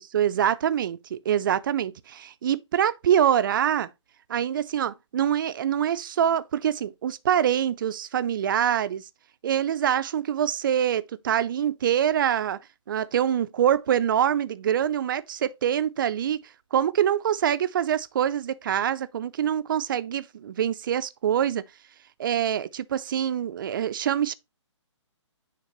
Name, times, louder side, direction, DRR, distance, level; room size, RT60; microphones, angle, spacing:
voice 1, 0.0-3.9 4.3-9.0 9.4-12.6 12.9-16.4 16.7-21.6 22.2-24.3, right 9 dB, 45° right, 0.5 m, -25 dB
9.6 x 3.5 x 3.0 m
hypercardioid pair, 150°, 16 cm